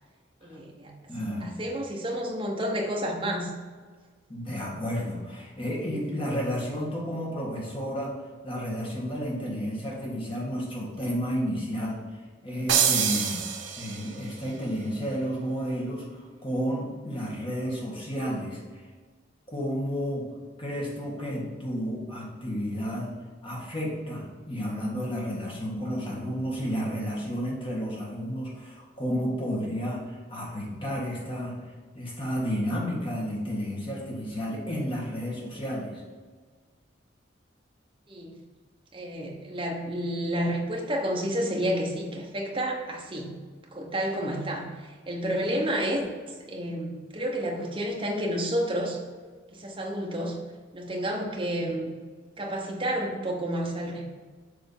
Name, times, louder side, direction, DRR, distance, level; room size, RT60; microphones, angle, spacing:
voice 1, 0.4-0.9 1.4-3.5 38.1-38.4 38.9-43.3 43.7-46.0 46.5-49.0 49.5-50.4 50.7-52.0 52.4-54.1, equal, 25° right, -1 dB, 1.0 m, -30 dB
voice 2, 1.1-1.5 4.3-8.1 8.4-13.4 13.8-18.6 19.5-20.3 20.6-23.1 23.4-31.5 31.9-36.0, equal, 30° left, -4 dB, 1.7 m, -31 dB
sound 1, 12.7-14.3, right 7 dB, 80° right, 0.8 m, -26 dB
6.8 x 3.4 x 5.4 m, 1.5 s
head